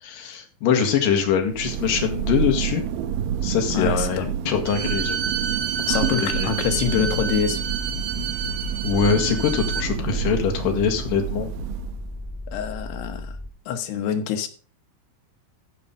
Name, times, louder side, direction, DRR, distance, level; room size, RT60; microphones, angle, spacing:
voice 1, 0.0-2.8 3.4-5.2 5.9-6.5 8.8-11.5, left 7 dB, 60° left, 3.1 m, -23 dB
Thunder, 1.2-12.3, right 9 dB, 85° right, 2.0 m, -29 dB
voice 2, 3.7-4.3 5.9-7.7 12.5-13.4 13.7-14.5, left 7 dB, 80° left, 3.2 m, -25 dB
Bowed string instrument, 4.6-9.9, right 7 dB, 65° right, 2.2 m, -30 dB
sound 1, 6.6-13.5, left 2 dB, 5° left, 1.0 m, -34 dB
14.5 x 5.4 x 5.4 m
omnidirectional pair, 4.8 m